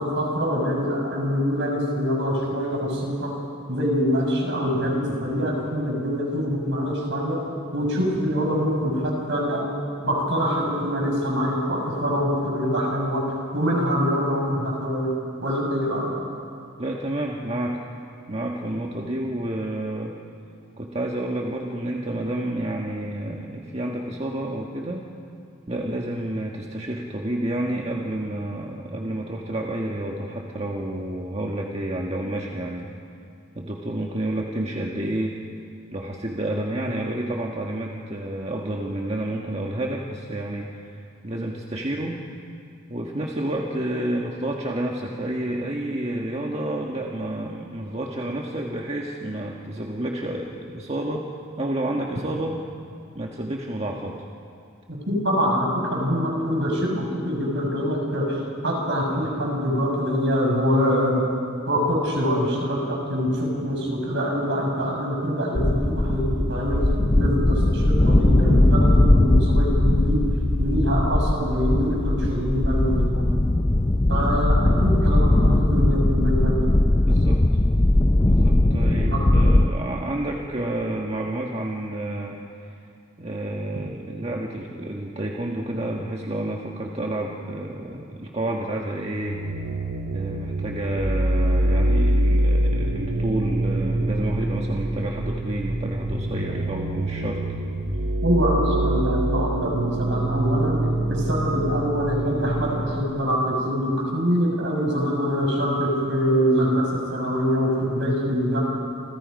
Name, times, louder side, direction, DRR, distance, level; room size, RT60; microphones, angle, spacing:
voice 1, 0.0-3.3 3.7-7.4 7.7-9.6 10.0-13.2 13.5-15.1 15.4-16.1 55.1-61.2 61.7-66.8 67.1-70.2 70.6-73.3 74.1-76.5 79.1-79.2 98.2-100.8 101.1-108.6, equal, 55° right, 0 dB, 6.4 m, -24 dB
voice 2, 16.8-17.8 18.3-20.2 20.8-25.1 25.7-32.9 33.5-35.4 35.9-42.2 42.9-51.3 51.6-52.6 53.1-54.2 75.7-75.9 77.0-77.4 78.2-82.8 83.2-89.4 90.1-97.4, right 1 dB, 30° right, 0 dB, 1.5 m, -29 dB
sound 1, 65.6-79.7, left 1 dB, 20° left, 0.6 m, -19 dB
sound 2, 89.2-102.9, right 1 dB, 80° right, 2.3 m, -25 dB
29.5 x 27.5 x 5.3 m, 2.7 s
head